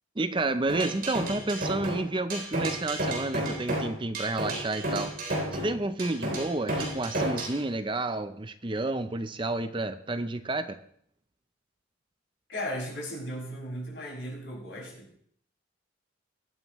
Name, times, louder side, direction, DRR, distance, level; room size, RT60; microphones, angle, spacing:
voice 1, 0.2-5.1 5.5-10.8, right 2 dB, 25° right, 10 dB, 0.6 m, -30 dB
sound 1, 0.7-7.6, right 1 dB, 45° right, 3.6 m, -32 dB
voice 2, 12.5-15.1, equal, 65° left, -3 dB, 5.8 m, -36 dB
22.5 x 9.0 x 3.1 m, 0.66 s
head